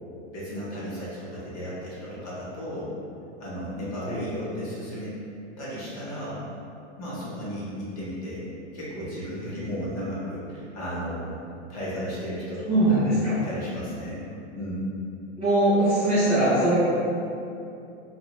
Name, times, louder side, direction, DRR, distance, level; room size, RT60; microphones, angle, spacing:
voice 1, 0.3-2.9 3.4-5.1 5.6-6.4 7.0-8.4 8.7-12.9 13.3-14.3 14.6-14.9, equal, 30° left, -8 dB, 0.6 m, -34 dB
voice 2, 12.7-13.3 15.4-16.8, right 1 dB, 15° right, -12 dB, 0.5 m, -21 dB
2.7 x 2.0 x 2.8 m, 2.7 s
supercardioid pair, 160°, 35 cm